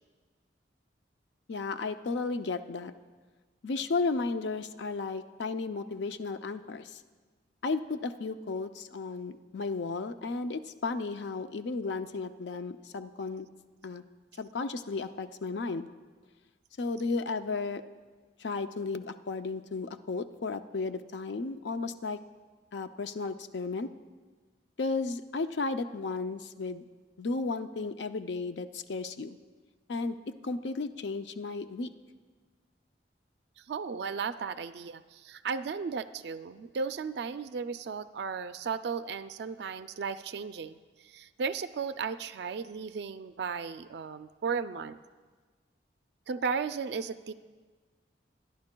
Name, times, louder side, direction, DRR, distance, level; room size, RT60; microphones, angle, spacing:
voice 1, 1.5-2.9 3.6-7.0 7.6-13.5 13.8-14.0 14.4-15.9 16.8-17.8 18.4-22.2 22.7-23.9 24.8-26.8 27.2-29.4 29.9-30.2 30.4-31.9, left 3 dB, 70° left, 10 dB, 0.5 m, -34 dB
voice 2, 33.6-45.0 46.3-47.3, right 5 dB, 65° right, 10 dB, 0.3 m, -35 dB
24.5 x 10.5 x 2.2 m, 1.4 s
head